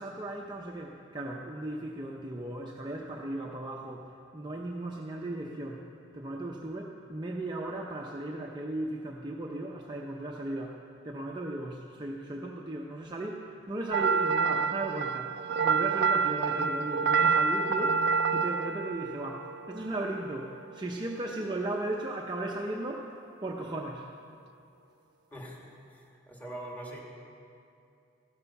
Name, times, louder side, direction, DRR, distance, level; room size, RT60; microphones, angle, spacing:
voice 1, 0.0-5.9 6.1-24.1, right 1 dB, 20° right, -1 dB, 0.7 m, -36 dB
sound 1, 13.9-20.2, right 5 dB, 55° right, 0.4 m, -27 dB
voice 2, 25.9-27.0, right 1 dB, 10° left, -2 dB, 2.3 m, -42 dB
15.0 x 12.5 x 5.9 m, 2.6 s
head